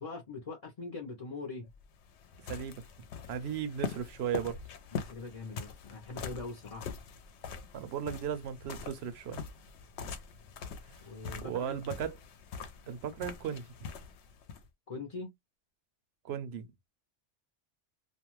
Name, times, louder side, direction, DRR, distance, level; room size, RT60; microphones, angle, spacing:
voice 1, 0.0-1.7 4.9-6.9 11.0-11.8 14.9-15.3, left 3 dB, 40° left, 0.6 m, -42 dB
sound 1, 1.7-14.7, left 6 dB, 70° left, 0.8 m, -43 dB
voice 2, 2.4-2.8 3.3-4.6 7.7-9.4 11.4-12.2 12.9-13.9 16.2-16.7, right 8 dB, 65° right, 0.8 m, -36 dB
2.5 x 2.2 x 3.0 m
omnidirectional pair, 1.2 m